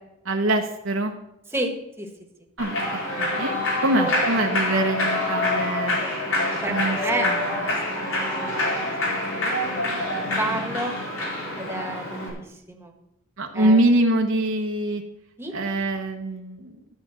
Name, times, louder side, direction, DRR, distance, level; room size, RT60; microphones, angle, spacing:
voice 1, 0.2-1.1 2.6-6.0 6.7-7.0 7.2-7.5 13.4-15.0 15.5-16.8, right 1 dB, 65° right, 3 dB, 1.0 m, -24 dB
voice 2, 1.5-2.1 4.0-4.3 6.0-7.3 7.6-9.6 10.0-11.0 11.6-13.0 13.5-13.8 15.4-15.6, right 1 dB, 10° right, 3 dB, 1.4 m, -32 dB
Human voice / Clapping / Cheering, 2.6-12.3, left 1 dB, 80° left, 4.1 m, -26 dB
12.5 x 5.0 x 7.6 m, 0.87 s
head